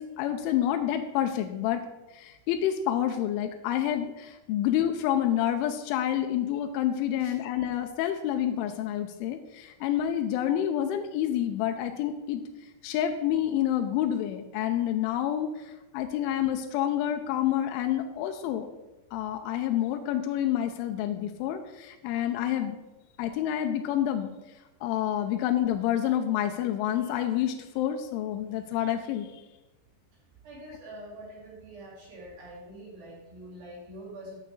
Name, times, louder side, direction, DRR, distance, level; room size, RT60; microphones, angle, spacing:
voice 1, 0.0-1.8 2.1-12.4 12.8-18.7 19.1-22.8 23.2-24.3 24.8-29.4, left 11 dB, 85° left, 6 dB, 3.1 m, -28 dB
voice 2, 30.4-34.4, right 1 dB, 60° right, -6 dB, 5.9 m, -45 dB
11.5 x 8.5 x 4.0 m, 1.0 s
omnidirectional pair, 5.5 m